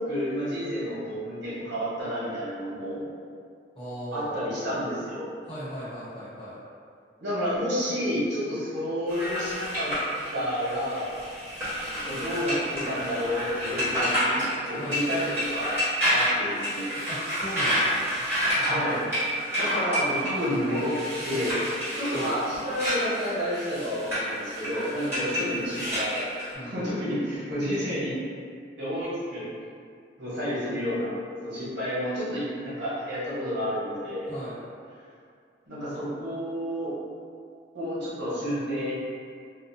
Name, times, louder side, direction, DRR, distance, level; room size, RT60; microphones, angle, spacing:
voice 1, 0.0-3.0 4.1-5.3 7.2-9.9 10.3-11.1 12.0-14.4 14.7-15.8 16.1-16.9 18.4-19.0 19.6-20.9 21.2-21.6 21.9-26.3 26.6-28.1 28.8-29.5 30.2-31.1 31.4-34.3 35.7-36.9 37.7-38.9, equal, 85° right, -11 dB, 1.1 m, -30 dB
voice 2, 3.7-4.5 5.4-6.6 14.8-15.0 17.1-18.2 22.1-22.3 26.5-26.9 34.2-34.6, equal, 30° left, -12 dB, 0.9 m, -38 dB
sound 1, 9.1-26.5, equal, 15° right, 1.1 m, -29 dB
2.6 x 2.0 x 2.7 m, 2.2 s
head